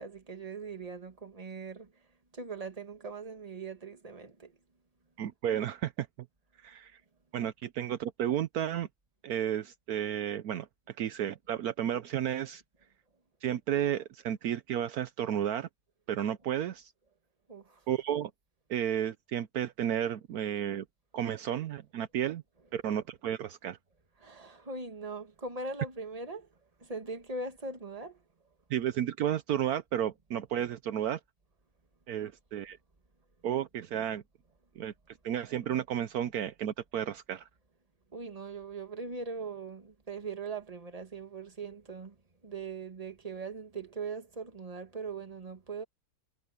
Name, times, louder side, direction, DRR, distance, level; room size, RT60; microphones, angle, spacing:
voice 1, 0.0-1.9 2.3-4.5 17.5-17.8 24.2-26.5 26.8-28.2 38.1-42.2 42.4-45.8, right 4 dB, 25° right, 1.7 m, -40 dB
voice 2, 5.2-6.1 6.6-6.9 7.3-8.9 9.2-12.6 13.4-15.7 16.1-16.9 17.9-18.3 18.7-20.8 21.1-22.4 22.7-23.8 28.7-31.2 32.1-32.8 33.4-34.2 34.8-34.9 35.2-37.5, right 10 dB, 75° right, 1.2 m, -32 dB
omnidirectional pair, 1.7 m